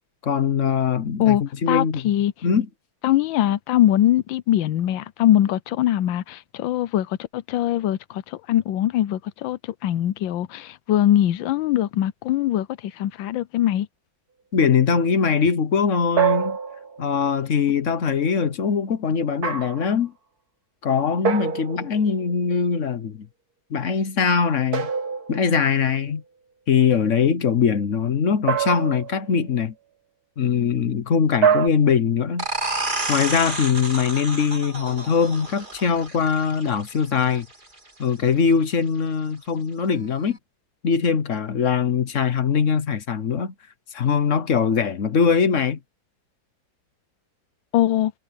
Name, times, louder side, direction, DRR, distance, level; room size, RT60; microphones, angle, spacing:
voice 1, 0.2-2.1 2.4-2.7 14.5-16.6 17.0-20.1 20.8-23.3 23.7-24.9 25.3-26.2 26.7-29.7 30.4-32.5 33.1-37.5 38.0-40.4 40.8-43.5 43.9-45.8, left 6 dB, 45° left, 1.2 m, -22 dB
voice 2, 1.7-2.3 3.0-13.9 47.7-48.1, left 12 dB, 80° left, 1.4 m, -22 dB
sound 1, 16.2-17.2 19.4-19.9 21.2-22.1 24.7-25.8 28.5-29.4 31.4-31.7, right 7 dB, 55° right, 2.2 m, -24 dB
sound 2, 32.4-37.8, right 2 dB, 25° right, 3.0 m, -31 dB
omnidirectional pair, 2.1 m